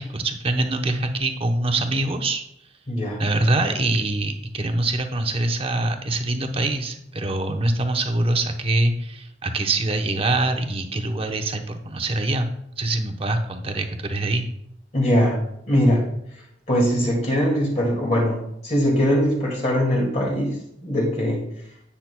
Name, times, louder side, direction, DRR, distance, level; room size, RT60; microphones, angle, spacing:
voice 1, 0.0-2.4 3.2-12.5 12.8-14.4, right 2 dB, 30° right, 5 dB, 0.8 m, -24 dB
voice 2, 2.9-3.2 14.9-16.0 16.7-21.4, equal, 40° left, -2 dB, 2.0 m, -21 dB
10.5 x 8.6 x 2.2 m, 0.74 s
head